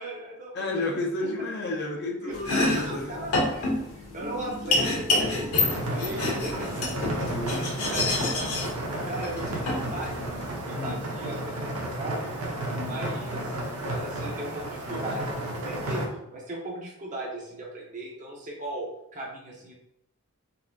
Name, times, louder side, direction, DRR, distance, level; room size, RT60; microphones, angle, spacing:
voice 1, 0.0-0.9 2.2-7.1 7.4-10.2 10.5-12.3 12.8-13.5 13.8-19.7, right 1 dB, 35° right, -2 dB, 0.8 m, -38 dB
voice 2, 0.5-3.3 7.1-8.0 10.7-11.1 12.7-13.1, left 2 dB, 50° left, 1 dB, 0.5 m, -32 dB
Domestic sounds home sounds, 2.3-10.5, left 2 dB, 80° left, 1.0 m, -28 dB
sound 1, 4.2-13.4, right 1 dB, 25° left, 1.0 m, -45 dB
sound 2, 5.5-16.1, right 1 dB, 85° right, 0.8 m, -32 dB
4.0 x 2.7 x 2.4 m, 0.80 s
head